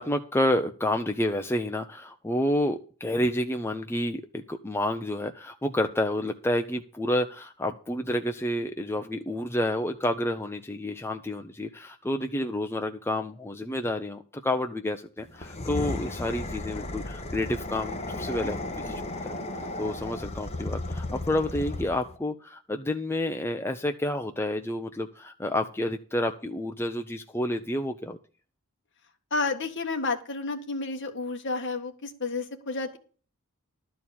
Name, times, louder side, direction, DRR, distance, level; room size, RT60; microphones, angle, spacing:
voice 1, 0.0-19.3 19.8-28.2, left 1 dB, 10° left, 5 dB, 0.6 m, -29 dB
sound 1, 15.3-22.1, left 2 dB, 30° left, 1.1 m, -34 dB
voice 2, 29.3-33.0, left 3 dB, 55° left, 4 dB, 1.7 m, -31 dB
12.5 x 4.5 x 8.5 m, 0.39 s
head